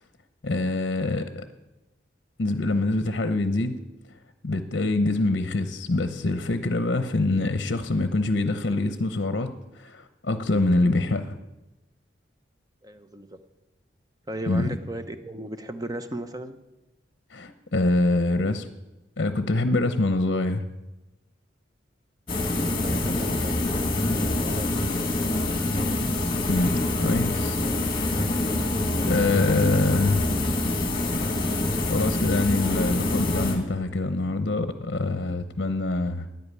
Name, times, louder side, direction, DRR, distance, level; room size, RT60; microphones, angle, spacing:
voice 1, 0.4-1.4 2.4-3.8 4.1-4.2 4.4-11.4 14.5-14.8 17.3-18.7 19.2-20.6 26.5-27.6 28.0-28.2 29.1-30.3 31.9-36.3, left 2 dB, 55° left, 10 dB, 0.7 m, -25 dB
voice 2, 12.8-13.4 14.3-16.6 22.5-23.6 24.4-24.7 25.1-25.3, right 1 dB, 20° right, 9 dB, 0.7 m, -36 dB
sound 1, 22.3-33.9, left 2 dB, 25° left, 1.7 m, -26 dB
10.5 x 8.7 x 9.5 m, 1.0 s
head